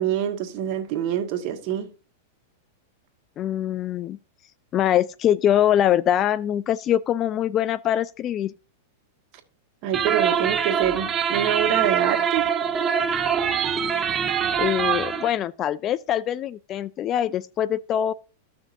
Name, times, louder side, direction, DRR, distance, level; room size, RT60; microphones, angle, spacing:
voice 1, 0.0-1.9 9.8-12.5, right 10 dB, 45° right, 1.5 m, -25 dB
voice 2, 3.4-4.2 4.7-8.5 14.6-18.1, left 11 dB, 30° left, 0.3 m, -23 dB
sound 1, 9.9-15.3, right 7 dB, 25° right, 0.6 m, -24 dB
14.0 x 6.0 x 2.6 m
hypercardioid pair, 130°, 0 cm